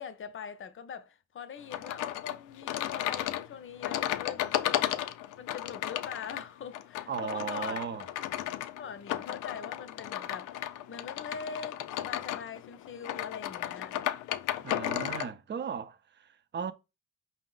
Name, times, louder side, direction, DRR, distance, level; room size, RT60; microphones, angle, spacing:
voice 1, 0.0-5.0 5.4-7.8 8.8-14.0, left 6 dB, 40° left, 0.6 m, -43 dB
sound 1, 1.7-15.3, left 13 dB, 85° left, 0.5 m, -34 dB
voice 2, 7.1-8.1 14.6-16.7, right 6 dB, 35° right, 0.6 m, -36 dB
5.1 x 2.0 x 3.9 m
cardioid pair, 90°, 30 cm